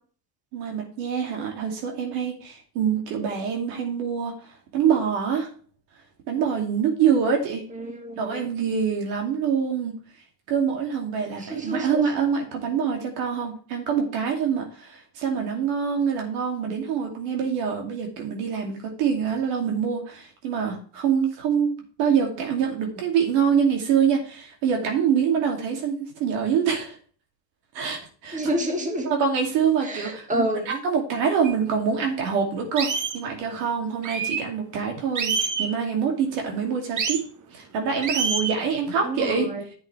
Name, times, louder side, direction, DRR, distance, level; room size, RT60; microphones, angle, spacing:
voice 1, 0.5-4.4 4.7-5.5 6.3-7.7 8.2-10.0 10.5-27.0 27.7-28.4 29.0-37.2 37.5-39.5, right 7 dB, 80° right, 1 dB, 2.7 m, -25 dB
voice 2, 7.7-8.4 11.4-12.1 28.3-29.1 29.8-30.7 39.0-39.6, right 1 dB, 15° right, 3 dB, 2.0 m, -28 dB
sound 1, 31.4-31.5 32.1-32.2 32.8-33.2 34.0-34.5 35.2-35.7 37.0-37.2 38.0-38.6, right 5 dB, 40° right, 1.3 m, -26 dB
10.0 x 8.1 x 3.3 m, 0.42 s
supercardioid pair, 95°, 47 cm